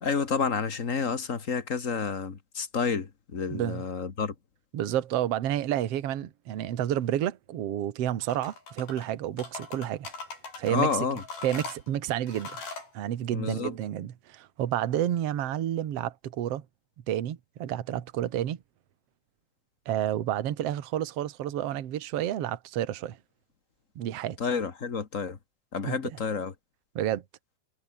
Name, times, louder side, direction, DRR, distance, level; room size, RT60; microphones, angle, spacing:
voice 1, 0.0-4.3 10.7-11.2 13.3-13.7 24.4-25.4 25.7-26.5, left 5 dB, 35° left, 1.2 m, -29 dB
voice 2, 3.5-3.8 4.7-10.1 10.6-10.9 11.4-12.6 12.9-16.7 17.1-18.6 19.9-23.2 24.0-24.4 25.8-26.0 27.0-27.2, right 11 dB, 55° right, 2.1 m, -30 dB
sound 1, 8.2-9.1 9.4-10.7 11.2-12.9, left 4 dB, 85° left, 10.0 m, -41 dB
omnidirectional pair, 4.1 m